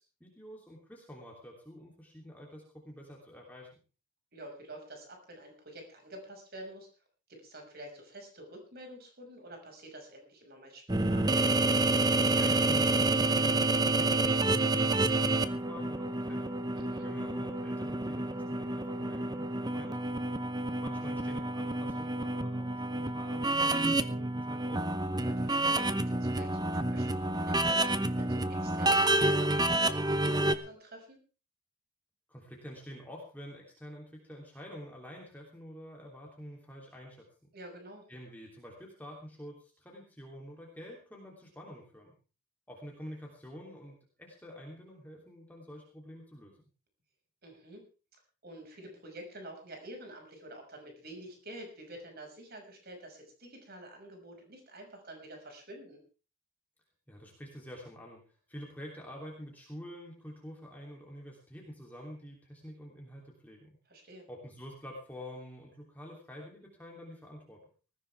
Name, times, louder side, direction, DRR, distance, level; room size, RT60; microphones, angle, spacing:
voice 1, 0.0-3.7 12.3-16.6 17.0-20.1 20.8-25.0 32.3-37.5 38.1-42.1 42.7-46.6 57.1-63.8 64.3-67.6, equal, 10° left, -2 dB, 3.1 m, -48 dB
voice 2, 4.3-6.9 7.3-11.3 16.8-17.1 25.2-31.2 37.5-38.1 47.4-47.8 48.4-56.0 63.9-64.3, right 1 dB, 45° right, 3 dB, 6.1 m, -48 dB
sound 1, 10.9-30.5, right 2 dB, 20° right, 0.8 m, -29 dB
19.5 x 15.0 x 3.5 m, 0.35 s
head